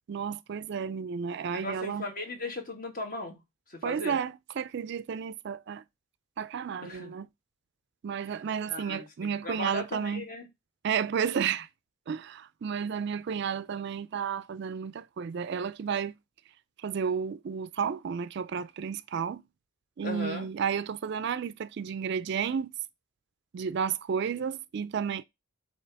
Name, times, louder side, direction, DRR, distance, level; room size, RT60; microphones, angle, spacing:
voice 1, 0.1-2.0 3.8-5.8 6.4-7.3 8.0-10.2 10.8-11.7 12.1-16.1 16.8-19.4 20.0-22.7 23.5-25.2, right 7 dB, 55° right, 0.3 m, -32 dB
voice 2, 1.5-3.4 3.7-4.2 6.8-7.1 8.2-8.4 8.7-10.5 20.0-20.5, left 2 dB, 40° left, 1.5 m, -37 dB
7.5 x 2.9 x 4.5 m
head